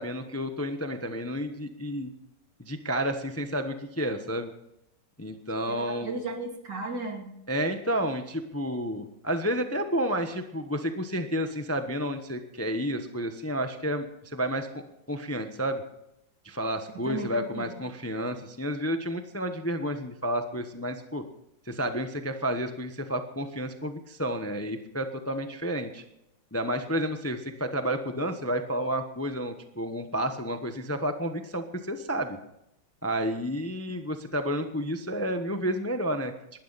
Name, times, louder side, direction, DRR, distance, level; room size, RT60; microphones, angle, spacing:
voice 1, 0.0-2.1 2.6-4.5 5.2-6.1 7.5-14.8 15.1-15.8 16.4-21.2 21.7-26.0 26.5-32.4 33.0-36.3, equal, 10° left, 7 dB, 0.8 m, -31 dB
voice 2, 5.7-7.3 17.1-17.7, right 3 dB, 70° right, 3 dB, 3.2 m, -35 dB
19.5 x 12.5 x 4.1 m, 0.82 s
omnidirectional pair, 1.9 m